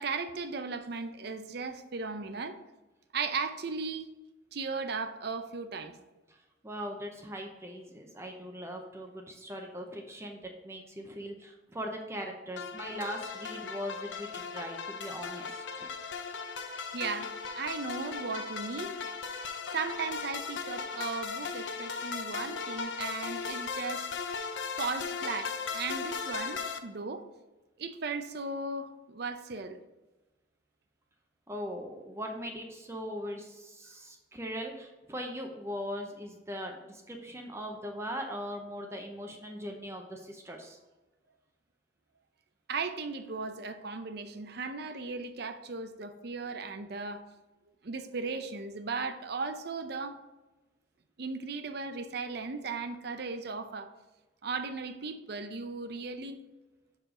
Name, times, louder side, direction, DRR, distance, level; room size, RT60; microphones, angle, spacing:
voice 1, 0.0-2.6 3.1-4.1 4.5-6.0 16.9-18.9 19.7-24.1 24.8-27.2 27.8-29.8 42.7-47.2 47.8-50.2 51.2-53.9 54.4-56.4, right 4 dB, 60° right, 8 dB, 0.6 m, -36 dB
voice 2, 6.6-15.9 31.5-40.8, equal, 15° right, 2 dB, 0.6 m, -40 dB
sound 1, 12.6-26.8, left 5 dB, 80° left, 0.6 m, -37 dB
6.5 x 4.9 x 3.7 m, 1.1 s
head